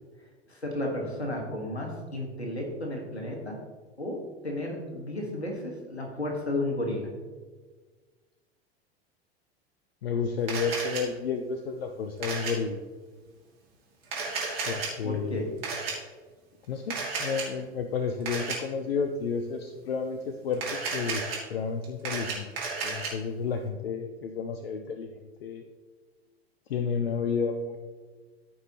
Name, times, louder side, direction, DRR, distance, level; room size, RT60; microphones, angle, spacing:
voice 1, 0.5-3.6 4.0-4.2 4.4-7.1 15.0-15.5, left 1 dB, 85° left, 1 dB, 1.7 m, -33 dB
voice 2, 10.0-12.8 14.6-15.6 16.7-22.5 22.8-25.1 25.4-25.6 26.7-27.8, left 5 dB, 65° left, 6 dB, 0.7 m, -31 dB
Camera, 10.5-11.0 12.2-12.5 14.0-14.9 15.6-15.9 16.9-17.5 18.2-18.6 20.5-21.4 21.8-23.1, right 4 dB, 70° right, 2.6 m, -32 dB
14.0 x 5.4 x 3.0 m, 1.4 s
figure-of-eight pair, 85°, 32 cm